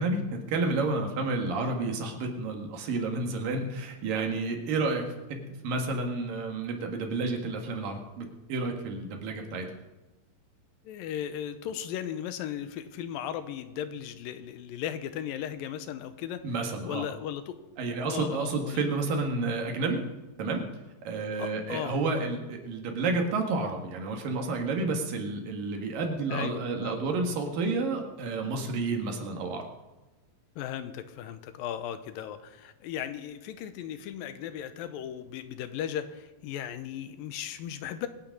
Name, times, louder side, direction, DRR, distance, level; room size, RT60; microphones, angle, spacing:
voice 1, 0.0-9.7 16.4-17.1 17.8-20.0 20.4-20.6 21.0-29.7, right 3 dB, 70° right, 3 dB, 3.4 m, -30 dB
voice 2, 10.8-16.4 16.9-17.6 18.0-18.8 21.4-22.0 26.3-27.0 30.6-38.1, left 10 dB, 85° left, 11 dB, 2.5 m, -36 dB
23.0 x 9.0 x 5.3 m, 1.1 s
omnidirectional pair, 4.1 m